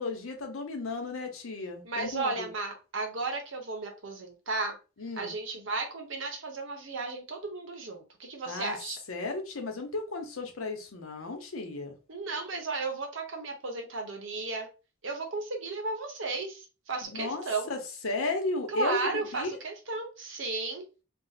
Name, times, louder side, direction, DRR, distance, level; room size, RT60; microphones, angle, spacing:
voice 1, 0.0-2.5 5.0-5.3 8.5-8.8 9.1-11.9 17.0-19.5, left 3 dB, 80° left, 0.7 m, -34 dB
voice 2, 1.8-4.8 5.2-9.0 12.1-14.7 15.0-17.7 18.7-20.8, right 3 dB, 65° right, 0.8 m, -34 dB
2.6 x 2.0 x 3.9 m
head